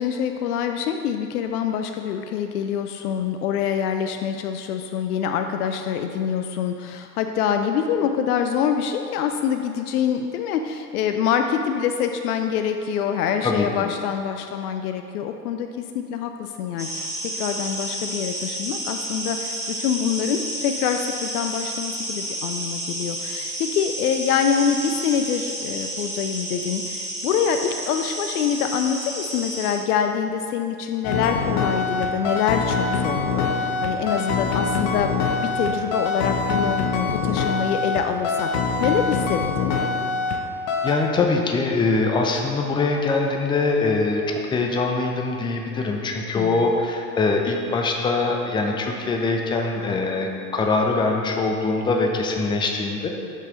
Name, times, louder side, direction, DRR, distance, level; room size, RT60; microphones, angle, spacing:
voice 1, 0.0-17.1 17.3-35.1 35.4-38.5 38.8-39.7 46.3-46.7, left 8 dB, 65° left, 6 dB, 0.5 m, -25 dB
voice 2, 13.4-13.9 40.8-53.1, left 3 dB, 10° left, 2 dB, 0.4 m, -23 dB
sound 1, 16.8-29.7, right 1 dB, 5° right, 1.4 m, -31 dB
sound 2, 31.0-40.4 40.7-41.0, left 4 dB, 45° left, 0.8 m, -24 dB
6.3 x 5.6 x 3.8 m, 2.5 s
figure-of-eight pair, 75°, 50 cm